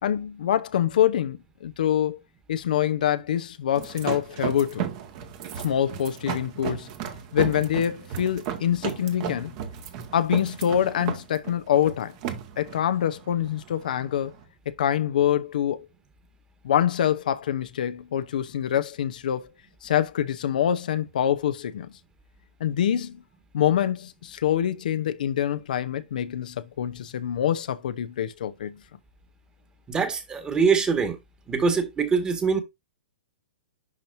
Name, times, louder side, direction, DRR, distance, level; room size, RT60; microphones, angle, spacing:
voice 1, 0.0-2.2 2.5-4.9 5.6-6.9 7.3-9.5 10.1-12.1 12.6-14.3 14.7-15.9 16.6-19.5 19.8-21.9 22.6-23.2 23.5-28.8, left 10 dB, 65° left, 0.8 m, -25 dB
sound 1, 3.8-14.4, right 8 dB, 45° right, 1.8 m, -35 dB
voice 2, 29.9-31.2 31.5-32.6, right 5 dB, 15° right, 1.8 m, -23 dB
11.0 x 4.3 x 2.7 m
hypercardioid pair, 115°, 5 cm